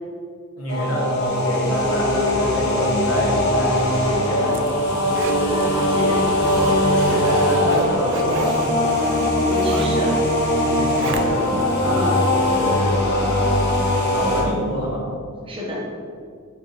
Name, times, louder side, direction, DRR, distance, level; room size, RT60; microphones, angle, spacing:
voice 1, 0.6-4.6 7.1-9.2 10.6-13.6 14.1-15.1, equal, 80° left, -4 dB, 1.1 m, -27 dB
sound 1, 0.7-14.4, left 1 dB, 50° left, 0.8 m, -20 dB
Zipper (clothing), 4.0-11.6 12.1-12.2, right 4 dB, 60° right, 0.3 m, -32 dB
voice 2, 5.3-6.3 6.6-7.3 8.1-8.3 9.4-10.2 11.8-12.2 15.5-15.9, equal, 25° right, -4 dB, 0.7 m, -30 dB
4.1 x 2.8 x 3.8 m, 2.2 s
head